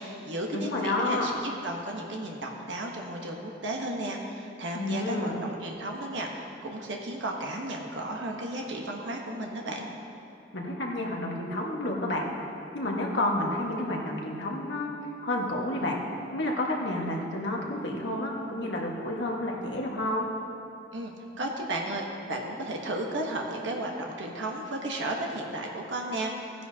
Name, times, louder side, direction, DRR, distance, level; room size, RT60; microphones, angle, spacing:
voice 1, 0.0-9.9 20.9-26.7, right 1 dB, 75° right, 0 dB, 1.2 m, -34 dB
voice 2, 0.5-1.3 4.7-5.4 10.5-12.2 12.7-14.9 15.2-16.0 16.3-20.3, left 1 dB, 70° left, -1 dB, 1.5 m, -30 dB
16.0 x 10.0 x 2.8 m, 2.7 s
head